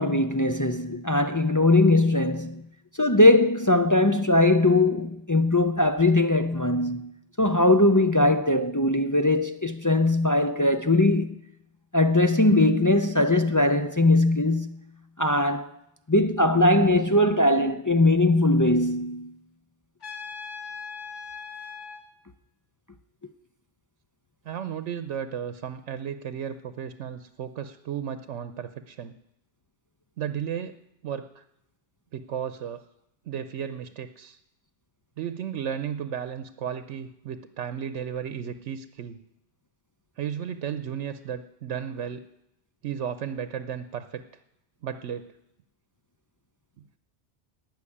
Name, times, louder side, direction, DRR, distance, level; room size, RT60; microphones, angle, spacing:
voice 1, 0.0-2.6 3.0-7.1 7.4-11.3 11.9-14.8 15.2-15.7 16.1-19.3, left 2 dB, 25° left, 0.4 m, -20 dB
Trumpet, 20.0-22.0, left 5 dB, 80° left, 2.5 m, -39 dB
voice 2, 24.5-29.1 30.2-30.8 31.0-31.4 32.1-32.8 33.3-34.4 35.2-39.2 40.2-42.2 42.8-44.2 44.8-45.3, right 8 dB, 80° right, 1.0 m, -34 dB
18.0 x 6.5 x 9.9 m
omnidirectional pair, 1.2 m